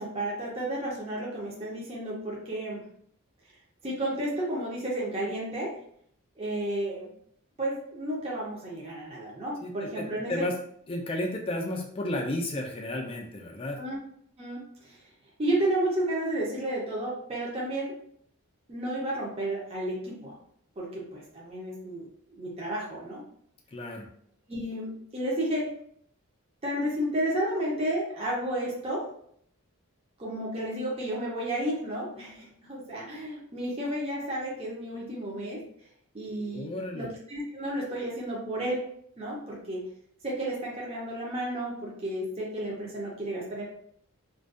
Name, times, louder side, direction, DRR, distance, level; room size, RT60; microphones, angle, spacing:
voice 1, 0.0-2.8 3.8-5.7 6.4-7.1 7.6-10.3 13.8-14.0 14.4-15.0 15.4-18.0 18.7-20.3 20.8-23.2 24.5-25.7 26.6-29.0 30.2-35.6 36.1-38.8 39.2-39.9 40.2-43.6, right 1 dB, 25° right, -4 dB, 0.5 m, -32 dB
voice 2, 9.6-10.5 10.9-13.8 23.7-24.1 36.5-37.1, left 1 dB, 25° left, 1 dB, 0.3 m, -33 dB
2.5 x 2.2 x 2.3 m, 0.65 s
head